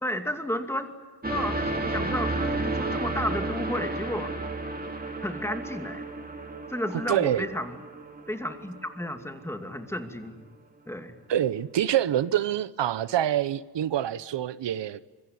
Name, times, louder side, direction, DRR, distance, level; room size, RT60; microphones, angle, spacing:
voice 1, 0.0-0.9 1.2-4.3 5.2-6.1 6.7-7.8 8.3-10.4 10.9-11.1, left 1 dB, 5° left, 2.5 m, -32 dB
sound 1, 1.2-9.1 9.9-10.0, right 2 dB, 20° right, 2.7 m, -32 dB
voice 2, 7.1-7.4 11.3-15.0, right 11 dB, 85° right, 1.0 m, -26 dB
25.0 x 23.5 x 9.5 m
wide cardioid pair, 150°, 42 cm